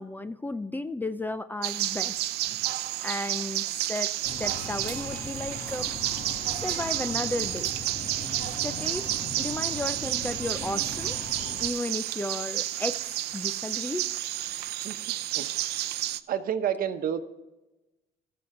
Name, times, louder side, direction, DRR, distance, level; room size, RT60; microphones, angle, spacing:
voice 1, 0.0-2.2 2.5-2.6 3.0-4.1 4.4-5.9 6.6-7.8 8.6-9.1 9.4-11.2 11.6-14.1, left 2 dB, 10° left, 13 dB, 0.5 m, -34 dB
sound 1, 1.6-16.2, right 15 dB, 75° right, 0.6 m, -31 dB
Breathing, 4.2-11.7, left 3 dB, 40° left, 1.6 m, -40 dB
voice 2, 15.3-15.9 16.3-17.2, right 9 dB, 55° right, 9 dB, 1.1 m, -30 dB
18.5 x 7.0 x 3.8 m, 1.0 s
cardioid pair, 110°, 17 cm